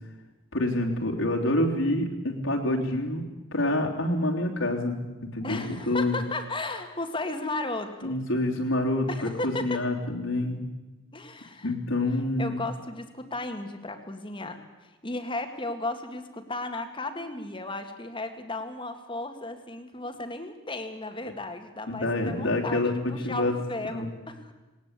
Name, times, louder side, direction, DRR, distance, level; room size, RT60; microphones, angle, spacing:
voice 1, 0.5-3.2 3.5-5.0 5.3-5.6 5.9-6.2 8.0-10.6 11.6-12.6 21.9-23.5 23.9-24.1, left 1 dB, 80° left, 1 dB, 3.4 m, -27 dB
voice 2, 5.4-8.2 9.1-9.8 11.1-11.7 12.4-24.5, left 2 dB, 25° left, 7 dB, 1.9 m, -35 dB
19.0 x 19.0 x 8.3 m, 1.1 s
head